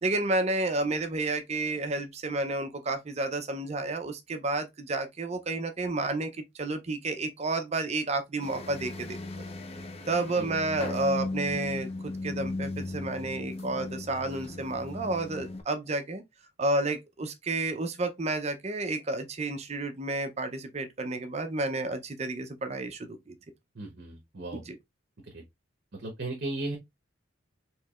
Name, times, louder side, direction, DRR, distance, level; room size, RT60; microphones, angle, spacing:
voice 1, 0.0-9.5 10.1-16.2 16.6-23.3 24.5-24.8, right 2 dB, 35° right, 0.5 m, -31 dB
sound 1, 8.4-15.6, left 2 dB, 30° left, 0.5 m, -37 dB
voice 2, 23.7-24.6 25.3-25.4 25.9-26.8, right 2 dB, 55° right, 0.9 m, -36 dB
4.5 x 3.0 x 2.3 m
head